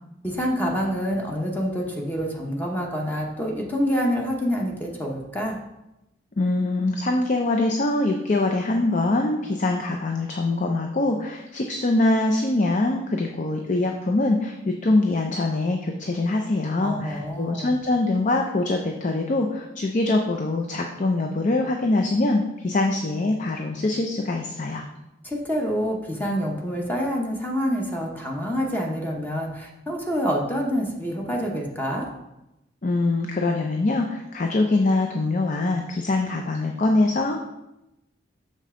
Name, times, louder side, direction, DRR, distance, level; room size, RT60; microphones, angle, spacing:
voice 1, 0.2-5.6 16.8-17.7 25.2-32.1, equal, 10° left, -1 dB, 0.9 m, -27 dB
voice 2, 6.4-24.8 32.8-37.5, left 2 dB, 40° left, 3 dB, 0.5 m, -23 dB
6.6 x 5.3 x 3.7 m, 0.92 s
head